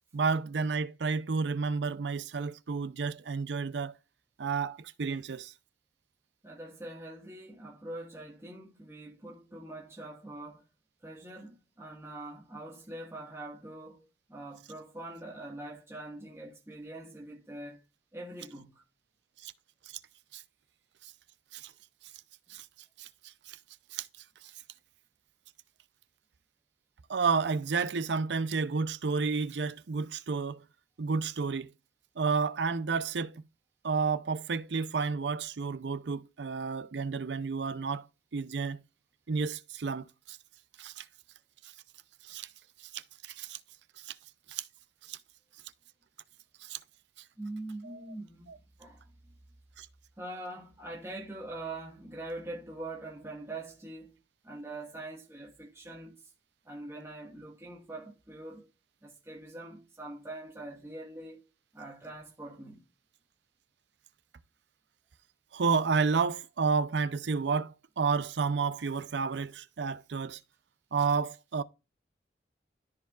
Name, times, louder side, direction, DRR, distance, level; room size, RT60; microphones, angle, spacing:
voice 1, 0.1-3.9 4.4-5.5 19.4-19.5 20.3-20.4 21.0-21.1 21.5-21.7 22.5-22.7 23.0-23.6 23.9-24.1 27.1-30.6 31.0-31.7 32.2-33.4 33.8-38.1 38.3-38.8 39.3-40.4 40.8-41.1 41.6-41.7 42.2-42.5 42.9-43.6 44.0-44.1 44.5-44.6 45.1-45.2 46.6-46.8 47.8-48.0 48.5-48.6 49.8-49.9 65.5-70.4 70.9-71.6, right 5 dB, 85° right, 0.5 m, -31 dB
voice 2, 6.4-10.6 11.0-17.8 18.1-18.8 47.4-49.1 50.2-54.2 54.4-56.3 56.6-58.7 59.0-61.4 61.7-62.8, right 2 dB, 15° right, 1.5 m, -43 dB
13.5 x 4.7 x 2.4 m
head